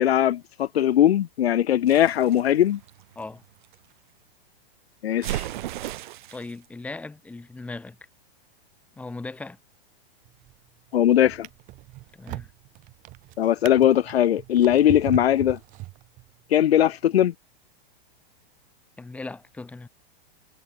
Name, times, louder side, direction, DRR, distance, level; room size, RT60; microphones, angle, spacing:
voice 1, 0.0-2.8 5.0-5.4 10.9-11.5 13.4-15.6 16.5-17.3, left 11 dB, 85° left, 1.9 m, -20 dB
sound 1, 1.9-3.8 5.2-6.5, right 14 dB, 50° right, 3.1 m, -35 dB
voice 2, 6.3-8.0 9.0-9.6 12.2-12.5 19.0-19.9, left 3 dB, 5° left, 3.5 m, -38 dB
Drawer open or close, 10.2-10.7 11.2-16.4 17.1-17.3, right 19 dB, 25° right, 7.4 m, -39 dB
supercardioid pair, 175°, 30 cm